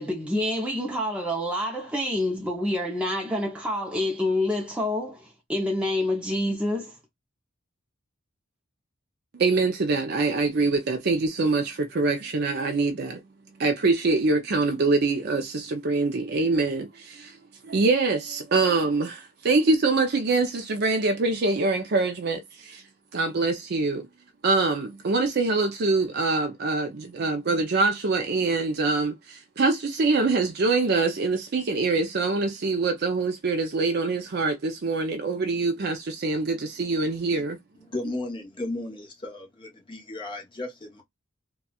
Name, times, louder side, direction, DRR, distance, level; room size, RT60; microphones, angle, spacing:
voice 1, 0.0-7.0, left 1 dB, 5° right, 0.6 m, -27 dB
voice 2, 9.3-13.2 13.6-17.4 17.6-22.8 23.1-24.1 24.4-37.6, right 3 dB, 50° right, 0.5 m, -24 dB
voice 3, 37.8-41.0, left 2 dB, 25° left, 0.9 m, -35 dB
4.0 x 2.3 x 2.3 m
head